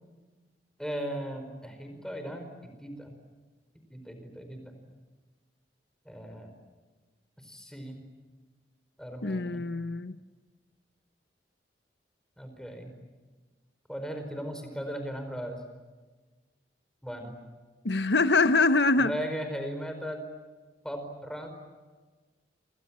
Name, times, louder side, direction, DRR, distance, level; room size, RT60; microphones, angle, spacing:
voice 1, 0.8-3.2 3.9-4.7 6.0-6.5 7.4-8.0 9.0-9.6 12.4-12.9 13.9-15.6 17.0-17.3 19.0-20.2 20.8-21.5, equal, 5° left, 6 dB, 4.8 m, -37 dB
voice 2, 9.2-10.2 17.8-19.1, left 3 dB, 80° left, 11 dB, 1.0 m, -24 dB
28.5 x 27.5 x 7.5 m, 1.3 s
head